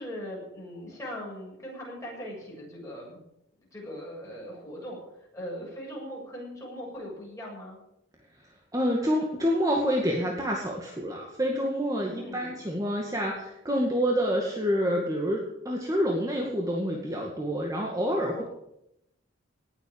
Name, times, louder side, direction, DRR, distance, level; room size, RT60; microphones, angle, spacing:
voice 1, 0.0-3.2 3.7-5.0 5.3-7.8 12.2-12.6 18.3-18.4, equal, 15° left, -3 dB, 7.8 m, -40 dB
voice 2, 8.7-18.4, equal, 15° right, -1 dB, 2.1 m, -27 dB
19.0 x 8.1 x 8.7 m, 0.82 s
head